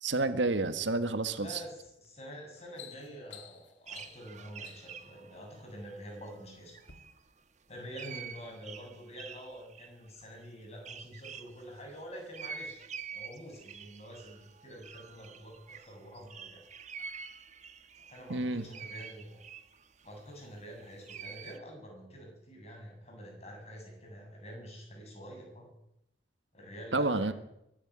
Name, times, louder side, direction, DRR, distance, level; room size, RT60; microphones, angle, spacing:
voice 1, 0.0-1.6 18.3-18.6 26.9-27.3, right 2 dB, 80° right, 11 dB, 1.5 m, -29 dB
voice 2, 1.4-6.8 7.7-12.8 13.1-16.6 18.1-19.4 20.0-25.7 26.5-27.3, equal, 35° left, 1 dB, 7.8 m, -47 dB
sound 1, 1.8-2.1 2.4-5.1 5.9-6.4 6.8-6.9, left 8 dB, 90° left, 2.6 m, -52 dB
sound 2, 3.9-6.5 6.7-7.2 7.9-11.6 12.3-21.6, right 6 dB, 40° right, 1.2 m, -47 dB
23.0 x 11.5 x 9.6 m, 0.83 s
head